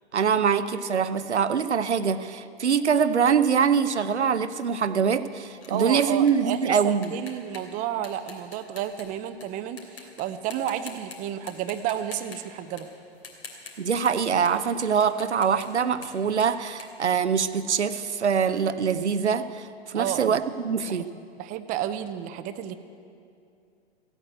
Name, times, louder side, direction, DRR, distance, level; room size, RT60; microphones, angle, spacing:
voice 1, 0.1-7.1 13.8-19.7 19.9-21.1, right 6 dB, 85° right, 12 dB, 0.8 m, -24 dB
sound 1, 4.6-9.5 9.8-10.2 10.5-11.2 11.5-17.8, left 4 dB, 80° left, 3.1 m, -46 dB
voice 2, 5.7-12.9 19.9-20.4 20.9-21.1 21.4-22.7, right 10 dB, 25° right, 11 dB, 0.7 m, -31 dB
15.0 x 8.9 x 9.1 m, 2.5 s
hypercardioid pair, 115°, 33 cm